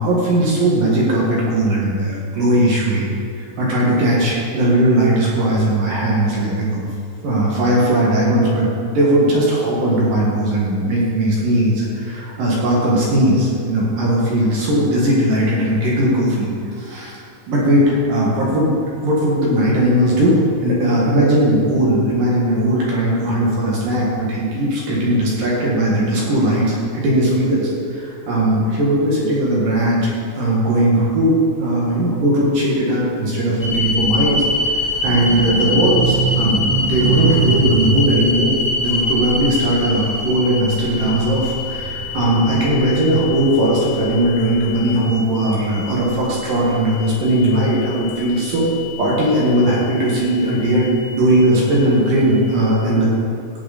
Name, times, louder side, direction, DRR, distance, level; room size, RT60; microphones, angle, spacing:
voice 1, 0.0-6.8 7.2-17.2 17.5-30.1 30.4-48.7 49.0-53.1, right 1 dB, 55° right, -5 dB, 2.7 m, -18 dB
sound 1, 33.6-52.7, left 2 dB, 10° left, 2.0 m, -26 dB
sound 2, 34.8-40.4 40.9-42.8, right 5 dB, 85° right, 3.2 m, -23 dB
17.5 x 7.3 x 4.2 m, 2.4 s
omnidirectional pair, 5.7 m